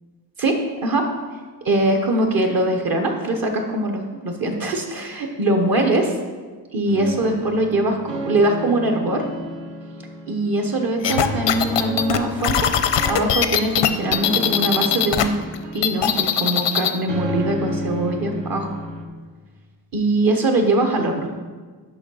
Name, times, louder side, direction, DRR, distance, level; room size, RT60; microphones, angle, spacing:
voice 1, 1.6-6.2 6.7-9.2 10.3-12.7 13.1-15.3 15.7-18.7 19.9-21.3, right 2 dB, 55° right, 3 dB, 1.0 m, -22 dB
sound 1, 6.9-19.1, right 1 dB, 85° right, 1.2 m, -32 dB
sound 2, 11.0-15.2 15.5-17.0, left 9 dB, 85° left, 0.6 m, -20 dB
7.1 x 5.5 x 5.4 m, 1.5 s
cardioid pair, 100°, 42 cm